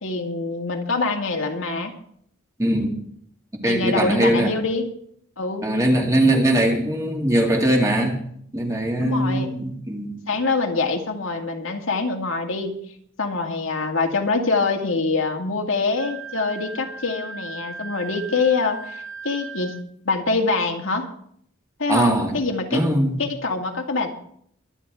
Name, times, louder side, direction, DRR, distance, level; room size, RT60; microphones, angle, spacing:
voice 1, 0.0-1.9 3.6-4.9 5.4-5.7 9.0-9.5 10.3-12.7 13.2-19.7 20.1-21.1 21.8-22.8 23.2-24.1, left 3 dB, 70° left, 2 dB, 2.0 m, -24 dB
voice 2, 2.6-2.9 3.6-4.6 5.6-8.2 8.5-10.2 21.9-22.4 22.7-23.2, right 1 dB, 15° right, 0 dB, 2.4 m, -20 dB
Wind instrument woodwind instrument, 16.0-19.8, right 4 dB, 65° right, 3.5 m, -37 dB
23.0 x 10.0 x 3.7 m, 0.65 s
head